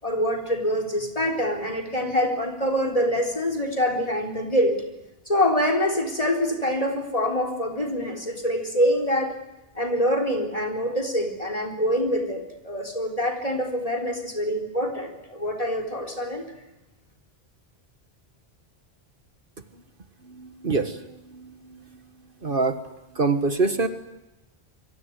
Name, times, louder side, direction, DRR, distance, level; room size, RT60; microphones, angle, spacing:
voice 1, 0.0-4.8 5.3-9.3 9.8-16.4, equal, 35° left, 5 dB, 4.0 m, -25 dB
voice 2, 20.3-21.1 21.3-21.8 22.4-22.8 23.1-23.9, right 3 dB, 55° right, 9 dB, 1.7 m, -25 dB
26.0 x 23.5 x 9.6 m, 0.95 s
omnidirectional pair, 1.1 m